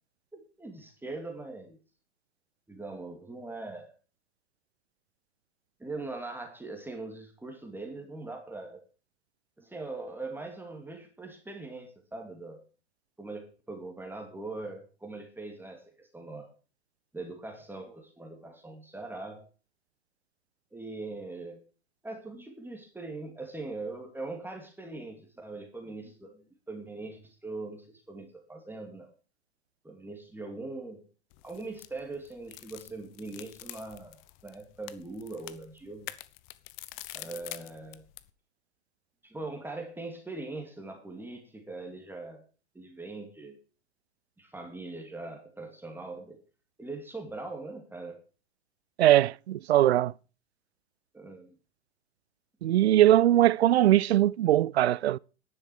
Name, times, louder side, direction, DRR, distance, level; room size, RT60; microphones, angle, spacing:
voice 1, 0.3-1.8 2.7-3.9 5.8-8.8 9.6-12.6 13.2-16.5 17.1-19.5 20.7-21.6 22.0-29.1 29.8-31.0 31.4-34.2 34.4-36.2 37.1-38.0 39.2-42.4 42.7-43.6 44.4-46.4 46.8-48.2 51.1-51.5 53.3-53.4, right 3 dB, 5° right, 2.5 m, -41 dB
sound 1, 31.3-38.3, left 18 dB, 45° left, 1.0 m, -46 dB
voice 2, 49.0-50.1 52.6-55.2, right 13 dB, 70° right, 0.5 m, -21 dB
11.0 x 10.5 x 4.8 m
figure-of-eight pair, 95°, 33 cm